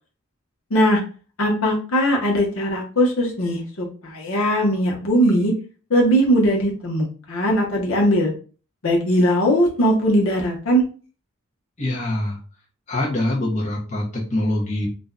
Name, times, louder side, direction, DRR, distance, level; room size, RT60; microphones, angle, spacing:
voice 1, 0.7-1.0 1.4-5.5 5.9-8.3 8.8-10.8, equal, 70° left, -1 dB, 0.9 m, -19 dB
voice 2, 11.8-12.4 12.9-14.9, left 1 dB, 35° left, -3 dB, 0.8 m, -24 dB
2.5 x 2.2 x 3.7 m, 0.37 s
head